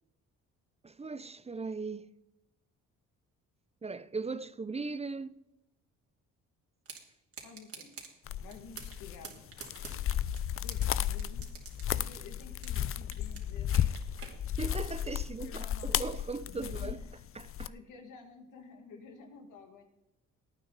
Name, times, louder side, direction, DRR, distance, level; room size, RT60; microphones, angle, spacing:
voice 1, 0.8-2.1 3.8-5.4 14.6-17.0 17.4-17.7, right 4 dB, 20° right, 0.6 m, -38 dB
sound 1, 6.9-7.0 7.3-8.1 8.5-9.0 9.2-10.9 11.2-12.9 13.1-14.3, right 6 dB, 50° right, 2.8 m, -46 dB
voice 2, 7.4-8.0 8.4-9.4 10.6-11.5 11.9-13.9 14.2-14.4 15.4-15.9 16.4-17.1 17.7-19.8, left 5 dB, 90° left, 2.2 m, -51 dB
sound 2, 8.3-17.7, left 10 dB, 45° left, 0.5 m, -34 dB
17.5 x 9.3 x 4.1 m
cardioid pair, 90°, 30 cm